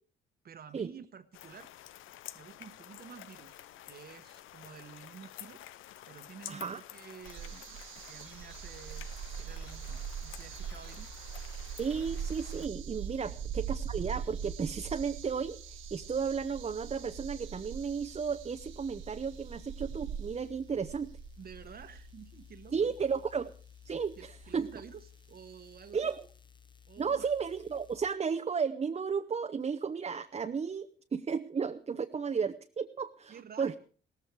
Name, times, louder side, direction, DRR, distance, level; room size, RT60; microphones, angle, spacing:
voice 1, 0.4-1.7 2.3-5.6 6.1-7.8 8.1-9.1 9.4-11.2 13.2-13.4 21.4-22.9 24.2-26.1 26.9-27.3 33.3-33.8, right 7 dB, 50° right, 8 dB, 1.2 m, -51 dB
sound 1, 1.3-12.7, left 13 dB, 80° left, 0.7 m, -50 dB
voice 2, 6.5-6.8 11.8-21.1 22.7-23.5 23.8-24.7 25.9-26.2 27.0-33.7, right 6 dB, 30° right, 7 dB, 0.8 m, -34 dB
sound 2, 7.2-22.4 24.0-24.1 24.4-24.5, right 8 dB, 80° right, 1.4 m, -42 dB
sound 3, 8.2-28.1, left 8 dB, 25° left, 1.2 m, -55 dB
17.5 x 14.5 x 4.7 m, 0.42 s
cardioid pair, 90°, 20 cm